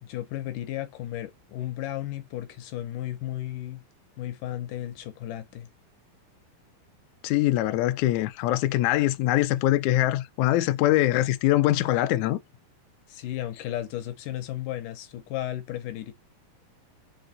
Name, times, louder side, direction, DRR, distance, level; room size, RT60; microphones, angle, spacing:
voice 1, 0.0-3.8 4.2-5.7 13.1-16.1, left 13 dB, 75° left, 2.4 m, -34 dB
voice 2, 7.2-12.4, left 15 dB, 90° left, 1.7 m, -23 dB
5.8 x 3.9 x 4.8 m
omnidirectional pair, 4.1 m